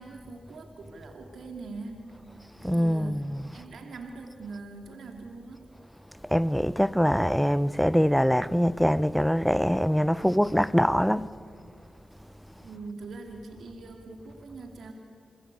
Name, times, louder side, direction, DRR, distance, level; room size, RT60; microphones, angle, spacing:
voice 1, 0.0-2.2 2.6-5.7 12.6-14.9, right 3 dB, 80° right, 2.6 m, -42 dB
voice 2, 2.6-3.6 6.2-11.3, equal, ahead, 0.9 m, -24 dB
27.5 x 22.0 x 8.3 m
supercardioid pair, 40°, 0 cm